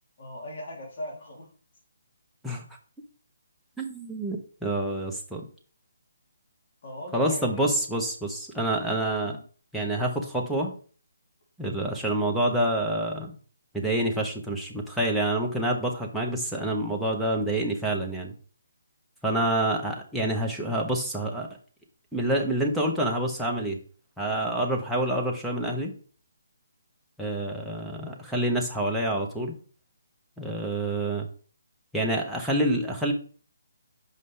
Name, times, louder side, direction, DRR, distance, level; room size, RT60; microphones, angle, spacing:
voice 1, 0.2-1.5 6.8-7.8 9.2-9.4, left 1 dB, 50° left, -2 dB, 3.0 m, -39 dB
voice 2, 3.8-5.5 7.1-9.4 9.7-10.7 11.6-13.3 13.7-18.3 19.2-21.5 22.1-23.8 24.2-25.9 27.2-29.6 30.4-31.3 31.9-33.1, right 1 dB, ahead, -3 dB, 0.9 m, -27 dB
5.4 x 5.2 x 3.3 m, 0.40 s
hypercardioid pair, 155°, 0 cm